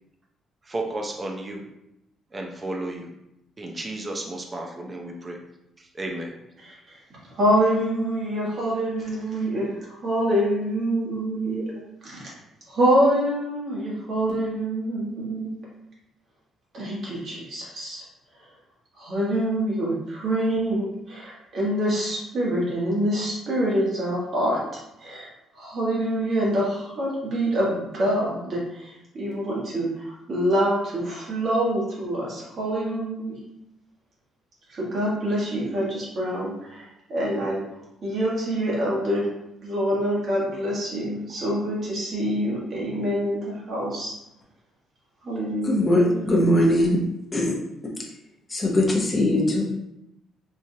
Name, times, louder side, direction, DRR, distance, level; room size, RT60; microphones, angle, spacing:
voice 1, 0.7-1.7 2.3-3.1 3.6-5.4 5.8-6.4, right 2 dB, 20° right, 2 dB, 0.5 m, -33 dB
voice 2, 6.6-7.0 7.3-11.7 12.0-12.3 12.7-15.5 16.7-18.0 19.0-24.6 25.0-33.4 34.7-37.6 38.0-39.3 39.6-44.1 45.2-46.2, right 1 dB, 45° right, -5 dB, 1.3 m, -26 dB
voice 3, 45.6-47.0 47.3-47.5 48.5-49.6, left 1 dB, 20° left, -2 dB, 0.7 m, -20 dB
4.4 x 2.5 x 2.7 m, 0.85 s
cardioid pair, 150°, 0 cm